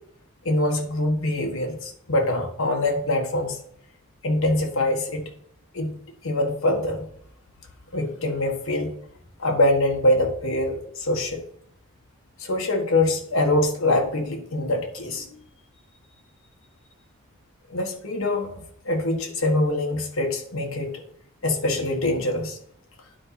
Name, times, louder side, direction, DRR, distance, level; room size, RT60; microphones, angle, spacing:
voice 1, 0.4-3.6 4.2-5.3 5.7-6.0 6.2-7.1 7.9-8.9 9.4-11.4 12.4-15.3 17.7-18.5 18.8-21.0 21.4-22.6, left 1 dB, 65° left, 2 dB, 1.5 m, -24 dB
9.8 x 4.2 x 5.9 m, 0.69 s
head